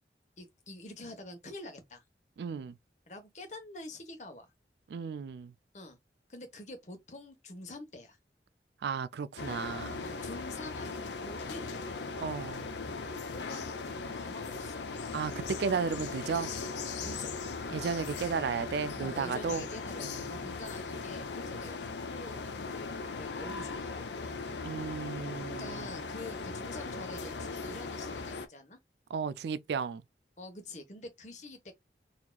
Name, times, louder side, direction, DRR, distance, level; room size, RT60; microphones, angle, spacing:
voice 1, 0.4-2.0 3.1-4.5 5.7-6.0 6.3-8.2 10.0-11.9 13.3-13.8 14.2-14.8 17.0-17.4 19.0-24.4 25.6-28.8 30.4-31.7, left 2 dB, 40° left, 1.1 m, -46 dB
voice 2, 2.4-2.8 4.9-5.5 8.8-10.0 12.2-12.7 15.1-16.5 17.7-19.7 20.0-20.5 24.6-25.9 29.1-30.0, right 6 dB, 75° right, 0.3 m, -34 dB
sound 1, 9.4-28.5, left 4 dB, 85° left, 0.7 m, -39 dB
4.1 x 2.9 x 2.3 m
head